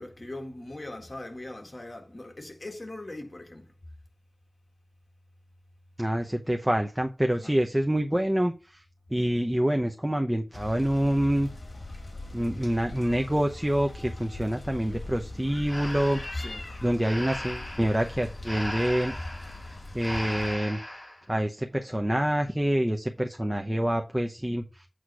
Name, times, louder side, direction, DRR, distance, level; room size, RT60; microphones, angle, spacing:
voice 1, 0.0-3.7 7.3-7.6 16.3-16.6, left 1 dB, 50° left, 1.8 m, -40 dB
voice 2, 6.0-8.8 9.1-11.5 12.3-16.4 16.8-19.1 19.9-20.8 21.3-24.9, equal, 15° right, 0.9 m, -26 dB
sound 1, 10.5-20.5, left 2 dB, 70° left, 1.6 m, -41 dB
Breathing, 15.7-21.2, left 1 dB, 25° left, 3.4 m, -38 dB
8.3 x 3.1 x 6.2 m
wide cardioid pair, 45°, 0 cm